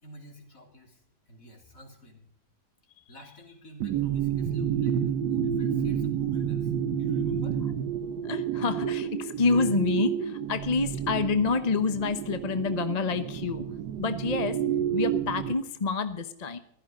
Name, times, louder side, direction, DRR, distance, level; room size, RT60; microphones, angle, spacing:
voice 1, 0.0-2.3 3.1-7.6, equal, 55° left, 2 dB, 3.8 m, -50 dB
sound 1, 3.8-15.5, right 9 dB, 90° right, 1.5 m, -29 dB
voice 2, 8.2-13.7 14.0-14.6 14.9-16.6, left 4 dB, 30° left, 10 dB, 0.8 m, -28 dB
15.5 x 13.0 x 5.1 m, 0.73 s
omnidirectional pair, 1.8 m